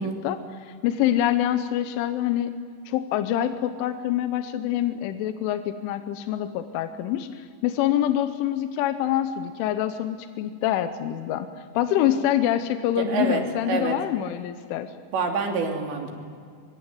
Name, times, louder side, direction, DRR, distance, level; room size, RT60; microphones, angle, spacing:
voice 1, 0.0-2.6 2.9-11.5 11.7-14.9, left 11 dB, 80° left, 9 dB, 3.4 m, -26 dB
voice 2, 13.1-13.4 13.7-13.9 15.1-16.1, right 4 dB, 65° right, 2 dB, 5.0 m, -26 dB
24.0 x 24.0 x 9.4 m, 2.2 s
omnidirectional pair, 5.6 m